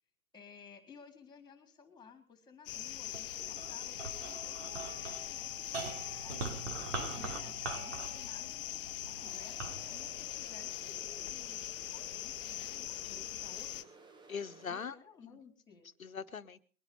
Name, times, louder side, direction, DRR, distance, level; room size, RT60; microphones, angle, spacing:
voice 1, 0.3-6.5 7.2-13.9 14.7-15.9, left 5 dB, 10° left, 6 dB, 3.9 m, -57 dB
sound 1, 2.7-13.8, left 13 dB, 40° left, 1.0 m, -42 dB
sound 2, 3.1-11.5 12.1-12.9, right 4 dB, 60° right, 3.6 m, -44 dB
voice 2, 6.9-7.4 13.0-13.2 14.3-14.9 15.2-15.4 16.0-16.6, left 6 dB, 85° left, 11 dB, 1.2 m, -42 dB
sound 3, 9.2-14.9, right 3 dB, 10° right, 1.2 m, -57 dB
22.0 x 10.5 x 5.4 m, 0.41 s
hypercardioid pair, 125°, 40 cm